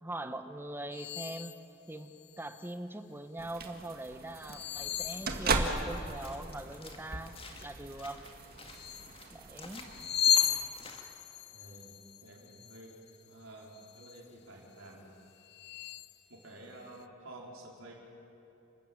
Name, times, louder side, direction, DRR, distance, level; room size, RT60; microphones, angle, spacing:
voice 1, 0.0-1.5 1.9-8.2 9.3-9.9, right 1 dB, 10° right, 9 dB, 1.0 m, -42 dB
sound 1, 0.9-1.6 2.1-2.7 4.4-6.0 8.7-9.2 9.8-13.3 13.7-14.2 14.8-14.9 15.4-16.2, left 8 dB, 55° left, 0.6 m, -35 dB
sound 2, 3.4-10.7, right 3 dB, 50° right, 1.7 m, -38 dB
sound 3, 4.7-11.0, left 3 dB, 30° left, 2.1 m, -52 dB
voice 2, 11.5-12.0 12.2-13.0 13.3-15.2 16.3-17.9, right 1 dB, 85° right, -2 dB, 4.7 m, -50 dB
30.0 x 13.5 x 8.8 m, 3.0 s
head